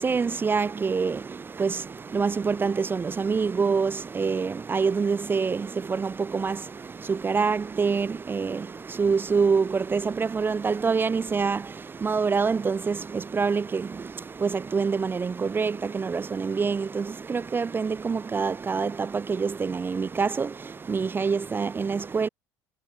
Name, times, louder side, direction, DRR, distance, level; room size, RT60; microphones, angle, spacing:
voice 1, 0.0-22.3, right 5 dB, 20° right, 0.5 m, -26 dB
figure-of-eight pair, 65°, 10 cm